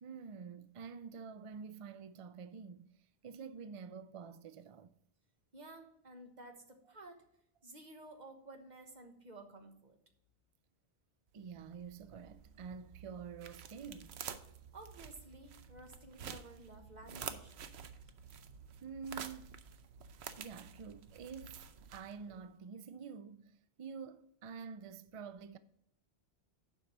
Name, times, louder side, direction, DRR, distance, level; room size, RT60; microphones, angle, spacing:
voice 1, 0.0-2.9 3.2-5.0 11.3-14.2 18.8-19.6 20.4-25.6, right 6 dB, 60° right, 0.3 m, -48 dB
voice 2, 5.5-7.2 7.6-10.0 14.7-17.5, right 2 dB, 45° right, 1.4 m, -53 dB
sound 1, 11.4-22.4, right 7 dB, 85° right, 1.0 m, -50 dB
7.4 x 5.4 x 6.6 m
omnidirectional pair, 1.1 m